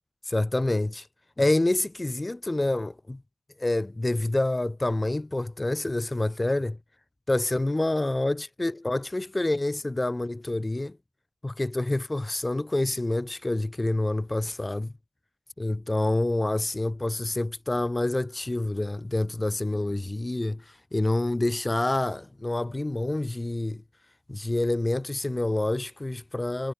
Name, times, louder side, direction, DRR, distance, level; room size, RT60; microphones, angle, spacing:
voice 1, 0.3-1.1 1.4-3.2 3.6-6.8 7.3-11.0 11.4-14.9 15.6-20.6 20.9-23.8 24.3-26.7, left 2 dB, 20° left, 0.4 m, -27 dB
supercardioid pair, 40°, 0 cm